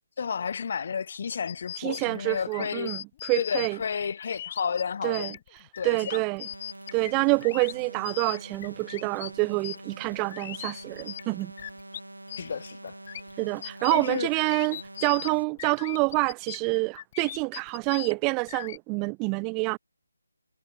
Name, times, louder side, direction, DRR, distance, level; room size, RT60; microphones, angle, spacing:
voice 1, 0.2-2.9 3.4-5.3 5.8-6.2 12.4-13.0 13.8-14.3, left 6 dB, 40° left, 1.3 m, -31 dB
sound 1, 1.5-12.0 12.3-18.8, left 11 dB, 25° left, 1.5 m, -40 dB
voice 2, 1.8-3.8 5.0-5.4 5.8-6.5 6.9-11.5 13.4-19.8, right 32 dB, 15° right, 0.4 m, -27 dB
sound 2, 6.4-15.4, right 2 dB, 90° right, 5.8 m, -45 dB
figure-of-eight pair, 160°, 0 cm